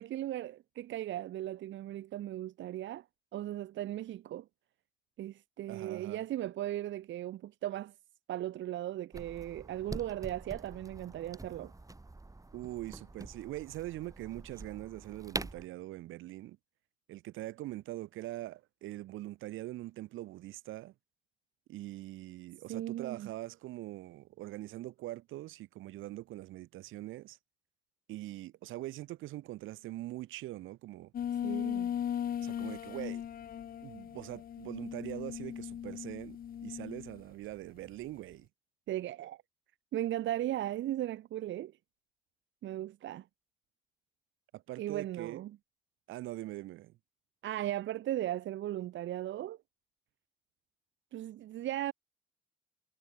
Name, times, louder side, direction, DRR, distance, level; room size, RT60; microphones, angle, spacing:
voice 1, 0.0-3.0 3.3-4.5 5.2-7.9 8.3-11.7 22.7-23.3 31.4-31.9 38.9-39.4 39.9-41.7 42.6-43.3 44.8-45.6 47.4-49.6 51.1-51.9, right 13 dB, 70° right, 0.9 m, -37 dB
voice 2, 5.7-6.2 12.5-16.6 17.1-20.9 21.7-27.4 28.1-31.1 32.4-33.2 33.8-38.5 44.5-45.4 46.1-47.0, right 16 dB, 90° right, 1.8 m, -43 dB
sound 1, 9.1-15.7, right 2 dB, 15° right, 4.8 m, -45 dB
sound 2, 31.1-37.2, left 9 dB, 50° left, 0.6 m, -38 dB
cardioid pair, 90°, 20 cm